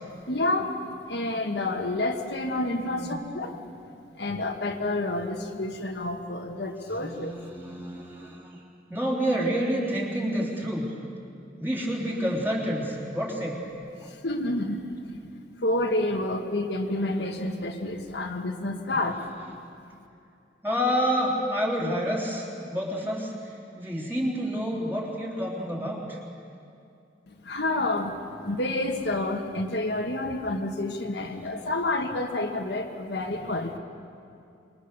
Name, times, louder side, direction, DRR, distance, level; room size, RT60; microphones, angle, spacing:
voice 1, 0.2-3.6 4.2-7.3 14.0-15.2 15.6-19.1 27.3-33.8, left 2 dB, 60° left, 3 dB, 1.6 m, -29 dB
voice 2, 2.8-3.2 7.0-8.5 8.9-10.9 11.6-13.6 14.0-14.1 18.9-19.0 20.6-23.3 23.8-26.2 31.6-31.7, equal, 10° right, -3 dB, 3.5 m, -29 dB
27.0 x 22.0 x 6.8 m, 2.5 s
head